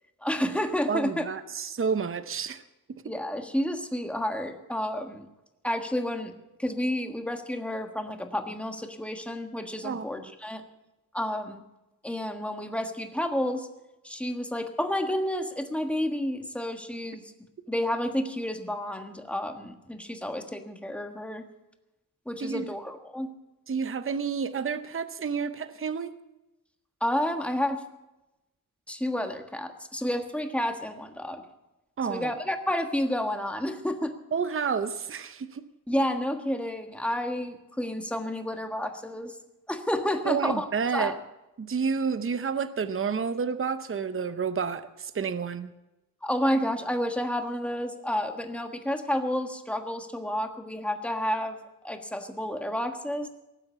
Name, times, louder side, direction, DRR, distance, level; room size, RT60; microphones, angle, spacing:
voice 1, 0.2-1.2 3.0-5.3 5.6-6.3 6.6-10.6 11.1-11.6 12.0-13.7 14.0-17.3 17.7-21.4 22.2-23.3 27.0-27.8 28.9-31.4 32.1-34.1 35.9-39.4 39.7-40.7 40.9-41.1 46.2-51.6 51.8-53.3, left 1 dB, 5° left, 5 dB, 1.4 m, -30 dB
voice 2, 0.9-2.6 9.8-10.1 22.4-22.7 23.7-26.1 32.0-32.3 34.3-35.6 40.2-41.1 41.6-45.7, right 6 dB, 40° right, 12 dB, 0.7 m, -30 dB
18.5 x 7.8 x 8.2 m, 0.96 s
wide cardioid pair, 115°, 34 cm